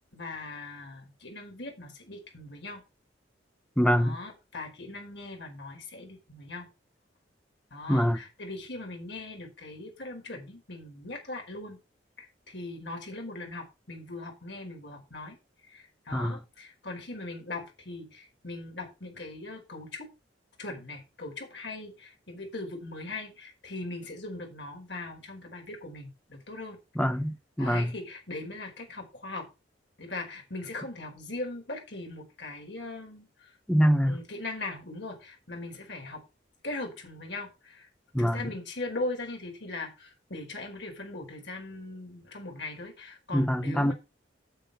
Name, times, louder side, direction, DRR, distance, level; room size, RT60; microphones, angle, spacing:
voice 1, 0.1-2.8 4.0-6.7 7.7-11.8 12.2-20.1 20.6-26.8 27.6-29.5 30.0-33.6 34.1-36.2 36.6-37.9 38.2-43.9, left 2 dB, 65° left, 4.8 m, -40 dB
voice 2, 3.8-4.1 7.9-8.2 16.1-16.4 27.0-27.9 33.7-34.2 38.1-38.4 43.3-43.9, equal, 5° left, 0.9 m, -24 dB
9.0 x 7.3 x 5.7 m
head